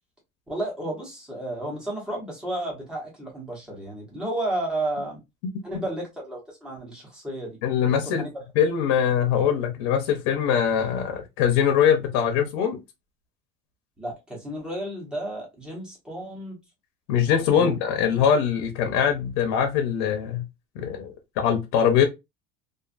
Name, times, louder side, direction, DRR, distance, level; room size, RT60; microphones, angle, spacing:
voice 1, 0.5-5.2 5.6-7.6 7.9-8.3 14.0-16.6 17.5-17.7, right 1 dB, 5° right, 0.9 m, -32 dB
voice 2, 7.6-8.2 8.6-12.8 17.1-20.4 20.8-22.1, left 8 dB, 70° left, 0.6 m, -22 dB
2.5 x 2.4 x 2.4 m
cardioid pair, 180°, 14 cm